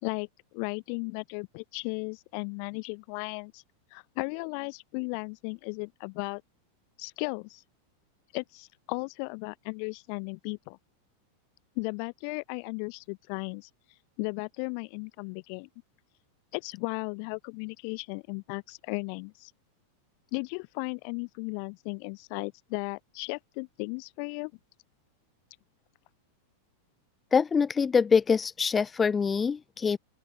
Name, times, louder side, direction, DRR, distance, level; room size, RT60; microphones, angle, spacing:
voice 1, 0.0-3.6 3.9-6.4 7.0-7.6 8.3-10.8 11.8-13.7 14.2-15.7 16.5-19.5 20.3-24.5, left 40 dB or more, 45° left, 2.4 m, -35 dB
voice 2, 27.3-30.0, left 6 dB, 15° left, 1.5 m, -24 dB
open air
figure-of-eight pair, 90°, 0 cm